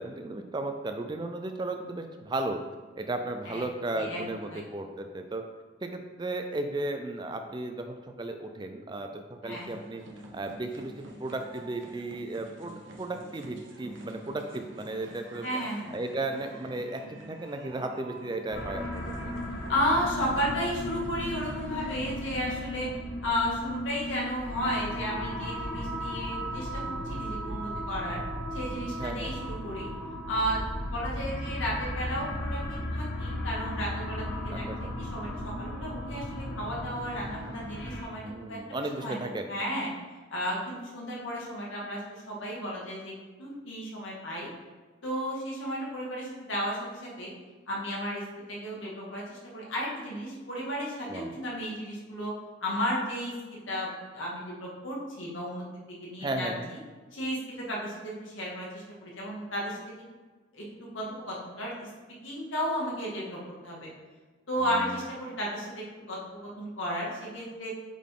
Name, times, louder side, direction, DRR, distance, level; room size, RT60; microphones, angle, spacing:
voice 1, 0.0-2.6 3.0-5.4 5.8-10.0 10.3-15.6 15.9-17.0 17.3-19.3 29.0-29.4 34.5-34.8 38.2-39.5 51.1-51.4 56.2-56.7 64.7-65.0, right 2 dB, 20° right, 6 dB, 0.4 m, -35 dB
sound 1, 9.5-22.7, right 1 dB, 70° right, 0.9 m, -48 dB
voice 2, 15.4-15.9 19.7-22.9 23.2-28.2 28.5-29.9 30.3-30.6 30.9-34.3 34.5-39.9 40.3-43.1 43.4-44.5 45.0-47.3 47.7-52.3 52.6-56.5 57.1-60.0 60.5-61.9 62.2-63.9 64.5-67.7, equal, 75° left, -4 dB, 1.9 m, -33 dB
sound 2, 18.5-38.0, equal, 50° left, 1.4 m, -36 dB
8.3 x 3.8 x 3.7 m, 1.3 s
head